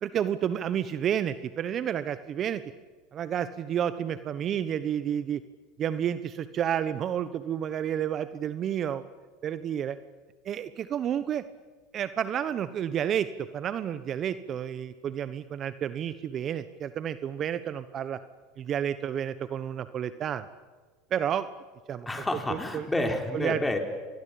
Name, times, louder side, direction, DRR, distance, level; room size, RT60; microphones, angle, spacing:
voice 1, 0.0-2.6 3.1-5.4 5.8-9.0 9.4-10.0 10.4-11.4 11.9-18.2 18.6-20.5 21.1-21.5 21.9-22.1 22.5-22.9 23.3-23.6, right 9 dB, 40° right, 13 dB, 1.1 m, -30 dB
voice 2, 22.1-23.8, left 1 dB, 10° left, 4 dB, 4.4 m, -29 dB
27.5 x 21.5 x 8.7 m, 1.4 s
hypercardioid pair, 100°, 0 cm